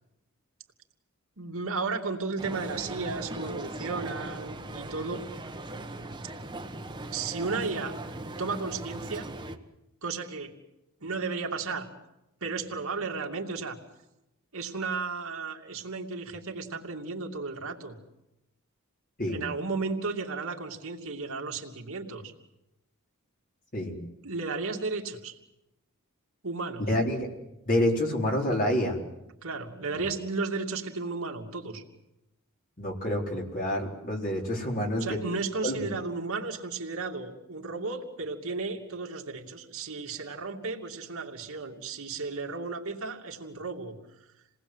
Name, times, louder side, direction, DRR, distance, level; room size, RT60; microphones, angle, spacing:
voice 1, 1.4-5.2 7.1-8.0 8.4-9.3 10.0-10.5 11.0-11.9 12.4-13.8 14.5-18.0 19.3-22.3 24.2-25.4 26.4-26.8 29.4-31.8 35.0-43.9, right 4 dB, 70° right, 2 dB, 2.7 m, -34 dB
sound 1, 2.4-9.6, right 2 dB, 20° right, 1.4 m, -39 dB
voice 2, 26.8-27.3 27.7-29.0 29.9-30.1 32.8-35.2 35.6-35.9, left 1 dB, 40° left, 0 dB, 4.4 m, -28 dB
28.5 x 19.5 x 8.1 m, 0.92 s
head